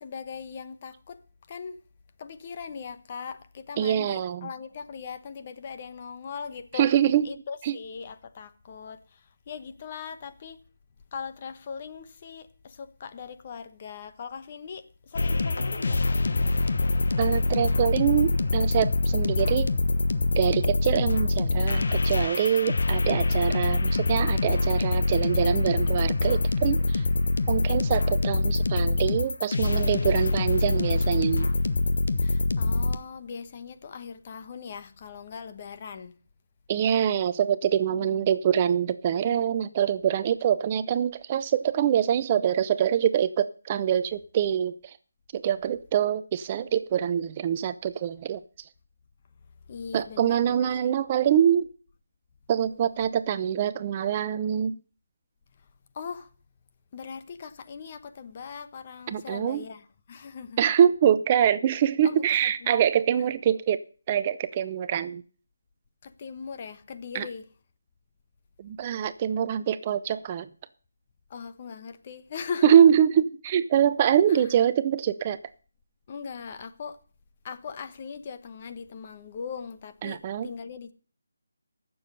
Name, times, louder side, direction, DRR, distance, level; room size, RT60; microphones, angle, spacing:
voice 1, 0.0-1.2 1.5-1.8 2.2-6.9 7.2-10.6 11.1-16.0 32.2-36.2 37.9-38.3 49.7-50.9 55.9-56.3 56.9-60.6 62.0-62.7 66.0-67.5 71.3-72.7 74.3-74.5 76.1-77.0 77.4-80.9, left 6 dB, 35° left, 1.0 m, -40 dB
voice 2, 3.8-4.5 6.7-7.3 7.6-7.8 17.2-19.7 20.4-27.1 27.5-31.5 36.7-44.9 45.3-48.4 49.9-51.7 52.5-54.8 59.1-59.7 60.6-65.2 67.1-67.3 68.6-70.5 72.6-75.4 80.0-80.5, right 9 dB, 30° right, 0.5 m, -24 dB
sound 1, 15.1-33.0, left 2 dB, 65° left, 1.2 m, -25 dB
16.0 x 7.0 x 5.4 m
figure-of-eight pair, 160°, 0 cm